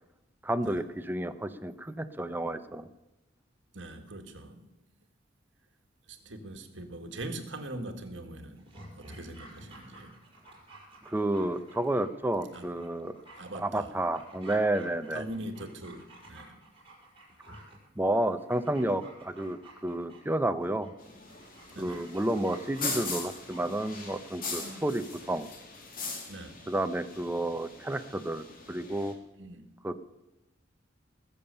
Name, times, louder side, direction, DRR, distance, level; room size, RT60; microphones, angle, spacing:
voice 1, 0.4-2.9 11.1-13.1 13.6-15.2 18.0-20.9 21.8-25.5 26.7-29.1 29.8-30.0, right 1 dB, 10° right, 10 dB, 0.6 m, -31 dB
voice 2, 3.7-4.7 6.1-8.6 9.0-10.2 12.5-12.7 13.4-13.9 15.1-16.6 21.7-22.0 24.6-24.8 26.3-26.7 29.3-29.7, right 1 dB, 70° right, 6 dB, 1.6 m, -42 dB
Dog, 8.6-24.8 25.1-25.2, right 1 dB, 30° right, 5.5 m, -52 dB
sound 1, 21.0-29.1, left 4 dB, 50° left, 2.3 m, -40 dB
20.0 x 7.2 x 6.8 m, 0.98 s
head